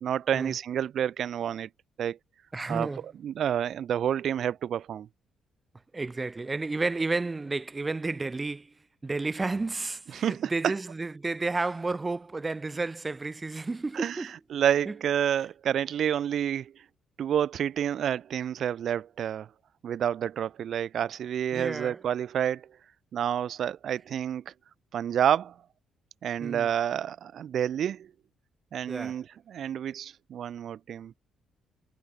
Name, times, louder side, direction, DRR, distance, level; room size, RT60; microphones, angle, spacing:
voice 1, 0.0-1.7 2.0-2.2 2.7-2.9 3.2-5.1 10.1-10.7 13.9-16.7 17.2-19.5 19.8-22.7 23.1-24.5 24.9-25.6 26.2-28.1 28.7-31.1, right 9 dB, 65° right, 1.8 m, -29 dB
voice 2, 2.5-3.0 5.9-8.7 9.0-14.3 14.8-14.9 21.5-22.0 26.4-26.7 28.9-29.2, right 3 dB, 25° right, 1.6 m, -32 dB
cardioid pair, 90°, 0 cm